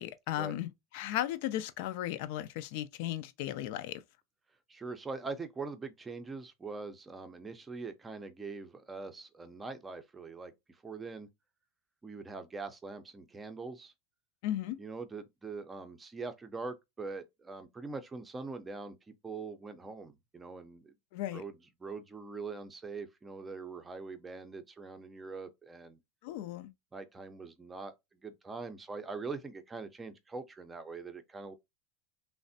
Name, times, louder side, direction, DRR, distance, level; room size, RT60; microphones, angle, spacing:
voice 1, 0.0-4.0 14.4-14.8 21.1-21.4 26.2-26.7, left 13 dB, 65° left, 0.4 m, -36 dB
voice 2, 4.7-10.5 10.8-11.3 12.0-13.9 14.8-20.9 21.3-26.0 26.9-27.9 28.2-31.5, right 4 dB, 15° right, 0.5 m, -43 dB
3.3 x 2.1 x 2.6 m
supercardioid pair, 125°, 0 cm